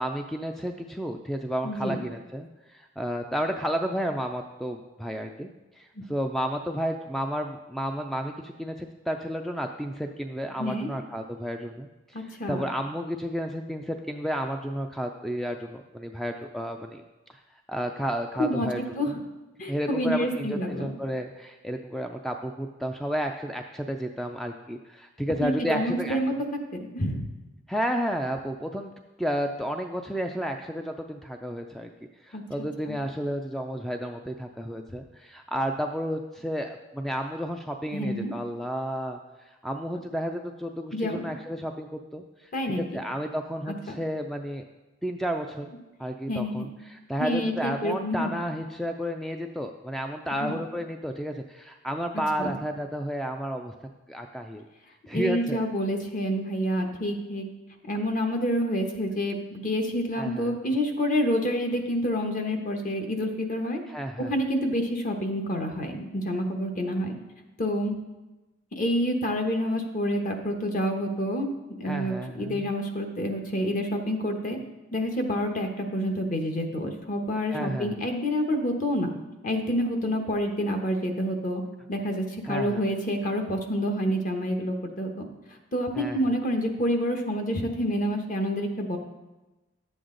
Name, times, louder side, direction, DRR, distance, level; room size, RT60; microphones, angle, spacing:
voice 1, 0.0-5.5 5.8-17.0 17.7-19.2 19.7-26.2 27.7-28.9 29.2-31.9 32.2-39.2 39.5-42.5 42.8-44.6 45.0-45.7 46.0-53.7 54.1-54.6 55.1-55.6 60.2-60.6 63.9-64.3 71.9-72.6 77.5-78.0 82.5-82.8 86.0-86.2, equal, ahead, 4 dB, 0.4 m, -32 dB
voice 2, 1.6-2.0 10.6-10.9 12.1-12.6 18.4-19.2 19.6-20.9 25.4-26.3 26.9-27.2 32.3-32.4 32.8-33.0 37.9-38.3 40.9-41.2 42.5-42.8 46.3-46.7 47.2-48.3 50.3-50.6 52.4-52.5 55.1-57.4 57.9-63.8 64.3-67.1 67.6-68.0 68.8-71.5 71.8-74.6 74.9-79.1 79.4-81.6 81.9-85.3 85.7-89.0, equal, 40° left, 4 dB, 1.1 m, -28 dB
11.0 x 7.9 x 3.8 m, 1.1 s
head